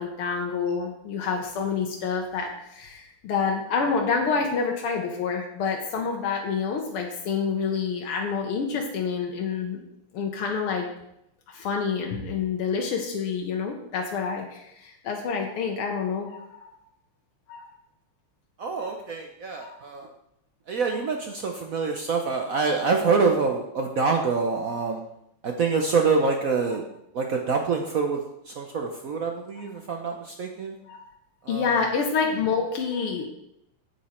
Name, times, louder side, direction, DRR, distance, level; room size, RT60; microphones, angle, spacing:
voice 1, 0.0-9.9 10.1-10.9 11.5-16.7 17.5-17.7 18.8-18.9 19.6-19.8 30.9-31.0 31.5-33.3, left 5 dB, 85° left, 1 dB, 1.9 m, -28 dB
voice 2, 18.6-20.1 20.7-25.0 25.4-26.8 27.1-30.8 31.4-31.8, right 4 dB, 65° right, 3 dB, 0.8 m, -26 dB
8.7 x 8.0 x 4.3 m, 0.81 s
omnidirectional pair, 2.4 m